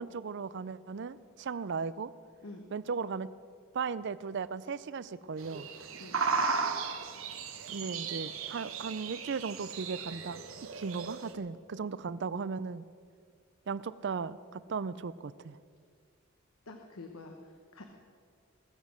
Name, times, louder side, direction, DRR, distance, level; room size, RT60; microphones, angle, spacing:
voice 1, 0.0-2.1 2.7-3.3 3.7-5.7 7.7-10.4 10.8-12.8 13.7-15.6, right 5 dB, 55° right, 17 dB, 0.4 m, -36 dB
sound 1, 5.4-11.3, right 4 dB, 75° right, 1.1 m, -35 dB
voice 2, 16.7-17.9, left 2 dB, 85° left, 3 dB, 1.1 m, -47 dB
21.0 x 7.3 x 6.4 m, 2.1 s
head